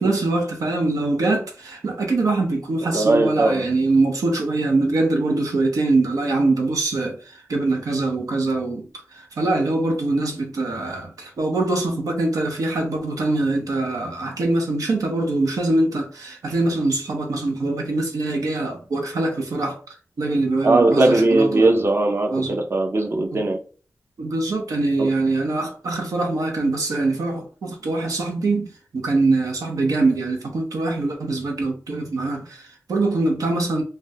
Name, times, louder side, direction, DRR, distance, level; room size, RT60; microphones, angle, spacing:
voice 1, 0.0-19.8 20.2-21.8 22.3-22.6 23.3-23.4 24.2-33.8, right 2 dB, 85° right, 0.6 m, -23 dB
voice 2, 2.8-3.7 20.6-23.6 25.0-25.1, right 2 dB, 45° right, 0.6 m, -19 dB
3.3 x 2.1 x 2.7 m
cardioid pair, 45°, 6 cm